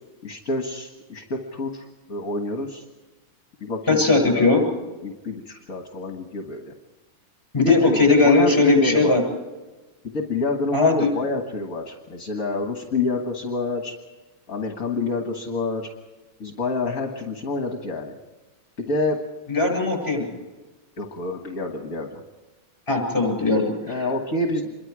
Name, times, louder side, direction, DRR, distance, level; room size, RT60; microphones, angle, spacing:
voice 1, 0.2-2.8 3.6-4.0 4.3-4.5 5.0-6.7 7.6-8.0 8.2-9.2 10.1-13.9 14.5-15.9 16.4-18.1 18.8-19.2 21.0-22.2 23.8-24.7, left 3 dB, 45° left, 3 dB, 1.9 m, -27 dB
voice 2, 3.9-4.6 7.5-9.2 10.7-11.1 19.5-20.3 22.9-24.1, left 3 dB, 15° left, 3 dB, 7.4 m, -19 dB
27.0 x 23.0 x 4.9 m, 1.2 s
omnidirectional pair, 2.3 m